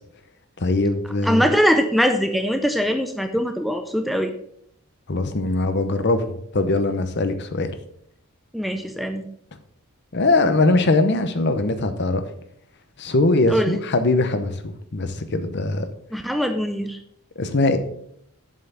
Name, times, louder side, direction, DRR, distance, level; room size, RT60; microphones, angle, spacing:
voice 1, 0.6-1.5 5.1-7.7 10.1-12.2 13.0-15.9 17.4-17.8, left 2 dB, 50° left, 9 dB, 0.8 m, -21 dB
voice 2, 1.2-4.3 8.5-9.3 13.5-13.8 16.1-17.0, equal, ahead, 6 dB, 0.5 m, -22 dB
7.5 x 5.6 x 5.8 m, 0.69 s
head